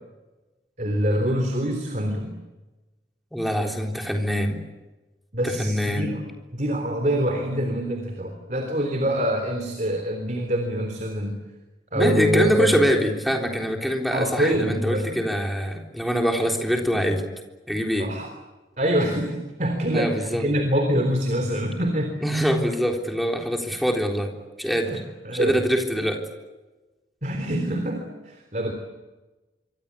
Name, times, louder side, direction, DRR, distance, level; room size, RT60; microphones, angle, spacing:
voice 1, 0.8-2.3 5.3-6.2 6.5-11.4 11.9-12.8 14.1-15.2 18.0-18.3 18.8-22.2 24.8-25.6 27.2-28.7, equal, 45° right, 5 dB, 3.5 m, -25 dB
voice 2, 3.3-4.6 5.4-6.1 11.9-17.2 17.7-18.1 19.9-20.5 22.2-24.3 24.6-25.0 25.3-26.2, equal, ahead, 2 dB, 3.7 m, -24 dB
26.0 x 25.0 x 8.5 m, 1.2 s
head